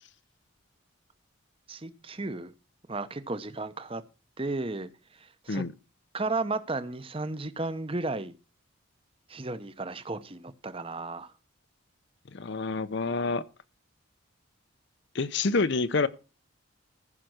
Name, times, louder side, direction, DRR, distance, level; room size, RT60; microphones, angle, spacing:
voice 1, 1.7-2.5 2.9-4.0 4.4-5.6 6.1-8.3 9.3-11.3, right 3 dB, 25° right, 0.8 m, -34 dB
voice 2, 12.3-13.4 15.1-16.1, left 3 dB, 55° left, 0.6 m, -27 dB
14.5 x 5.9 x 6.4 m
head